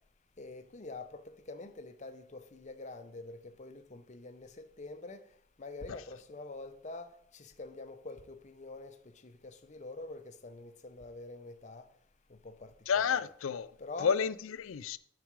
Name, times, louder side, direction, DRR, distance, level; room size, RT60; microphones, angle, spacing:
voice 1, 0.4-5.2 5.6-11.9 12.3-13.2 13.8-14.1, left 3 dB, 35° left, 0.7 m, -46 dB
voice 2, 12.9-13.7 14.0-15.0, left 6 dB, 80° left, 0.4 m, -30 dB
9.3 x 4.9 x 4.7 m
head